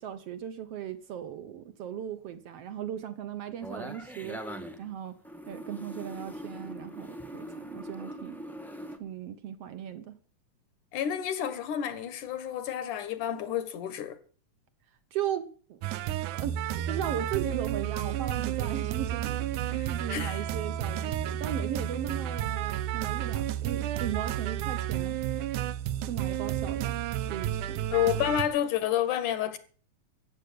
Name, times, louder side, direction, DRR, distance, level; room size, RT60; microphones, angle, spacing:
voice 1, 0.0-4.5 4.8-5.2 5.5-8.4 9.0-10.2 15.1-15.8 16.2-16.6 16.9-19.6 19.9-25.2 26.0-27.8, right 10 dB, 65° right, 1.8 m, -37 dB
sound 1, 3.6-4.9 5.2-9.0, right 1 dB, ahead, 0.5 m, -41 dB
voice 2, 10.9-14.2 19.7-20.4 27.9-29.6, left 10 dB, 85° left, 3.0 m, -30 dB
sound 2, 15.8-28.4, right 11 dB, 85° right, 2.3 m, -31 dB
15.0 x 8.3 x 8.5 m
omnidirectional pair, 3.5 m